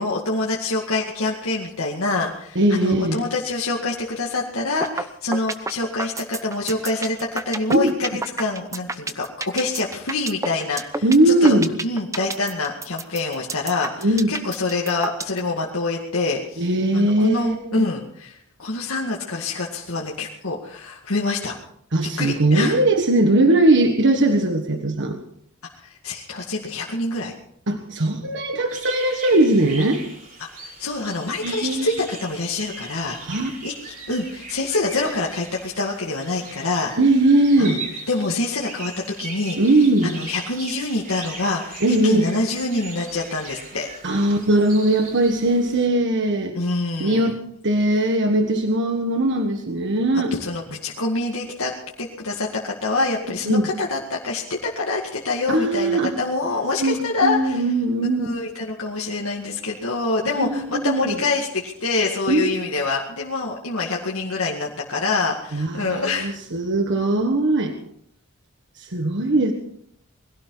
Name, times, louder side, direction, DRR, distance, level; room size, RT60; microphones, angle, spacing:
voice 1, 0.0-11.6 11.8-16.7 16.9-21.6 22.2-22.8 25.8-27.3 30.6-33.2 33.6-36.9 37.6-37.8 38.1-38.9 39.2-43.9 46.5-47.4 50.4-57.6 58.2-66.4, left 3 dB, 70° left, -3 dB, 2.1 m, -26 dB
voice 2, 2.5-3.2 7.7-7.9 11.0-11.7 14.0-14.3 16.6-17.8 21.9-25.2 27.7-30.0 31.4-31.9 33.2-33.5 37.0-37.8 39.6-40.1 41.8-42.3 44.0-46.6 47.0-47.4 47.6-50.3 53.4-53.7 55.5-56.1 56.8-58.3 60.4-61.2 62.3-62.5 65.5-67.7 68.8-69.5, right 1 dB, 60° right, 4 dB, 1.5 m, -19 dB
sound 1, 4.8-5.0 5.3-15.4, right 3 dB, 15° right, 0.9 m, -29 dB
sound 2, 28.7-45.9, right 3 dB, 40° right, 5.5 m, -39 dB
21.5 x 17.0 x 4.0 m, 0.69 s
head